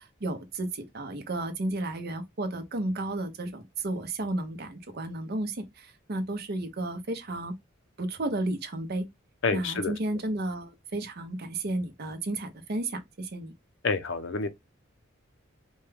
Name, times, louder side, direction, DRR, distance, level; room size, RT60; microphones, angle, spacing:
voice 1, 0.0-7.5 8.0-9.1 9.5-13.5, right 2 dB, 50° right, 0.7 m, -33 dB
voice 2, 9.4-9.9 13.8-14.5, left 4 dB, 65° left, 0.6 m, -28 dB
4.3 x 2.3 x 3.3 m
head